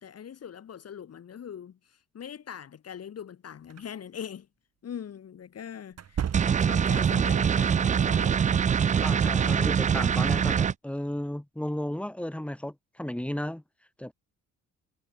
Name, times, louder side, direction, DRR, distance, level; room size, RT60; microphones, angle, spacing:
voice 1, 0.0-4.5 4.8-8.4 9.2-9.7, left 8 dB, 55° left, 3.1 m, -42 dB
sound 1, 3.7-3.9 5.9-6.9, right 8 dB, 55° right, 4.7 m, -34 dB
sound 2, 6.3-10.7, right 7 dB, 25° right, 0.4 m, -24 dB
voice 2, 9.0-13.6 14.0-14.1, left 1 dB, 5° left, 4.2 m, -34 dB
cardioid pair, 90°, 30 cm